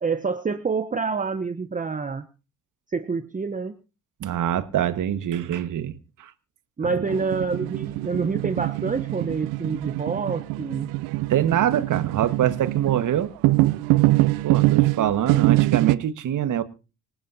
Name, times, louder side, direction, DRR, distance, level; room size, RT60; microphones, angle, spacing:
voice 1, 0.0-2.3 2.9-3.8 6.8-10.9, right 4 dB, 20° right, 0.9 m, -27 dB
voice 2, 4.2-5.9 6.2-6.3 6.8-7.1 11.3-13.3 14.4-16.6, right 10 dB, 50° right, 1.6 m, -24 dB
sound 1, 7.1-15.9, right 19 dB, 65° right, 0.8 m, -23 dB
26.0 x 8.8 x 2.8 m
hypercardioid pair, 55°, 39 cm